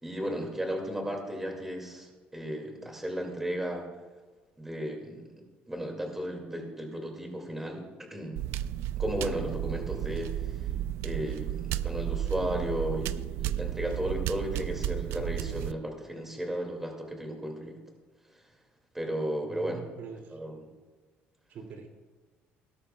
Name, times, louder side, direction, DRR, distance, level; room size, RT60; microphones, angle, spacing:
voice 1, 0.0-3.9 4.6-5.3 5.7-8.4 9.0-10.6 11.0-17.8 18.9-19.8 20.3-20.6, equal, 10° right, 2 dB, 2.1 m, -34 dB
sound 1, 8.4-15.7, right 12 dB, 85° right, 0.4 m, -33 dB
voice 2, 19.5-20.4 21.5-21.9, right 5 dB, 55° right, 2 dB, 2.4 m, -44 dB
17.5 x 13.0 x 2.3 m, 1.3 s
cardioid pair, 145°, 4 cm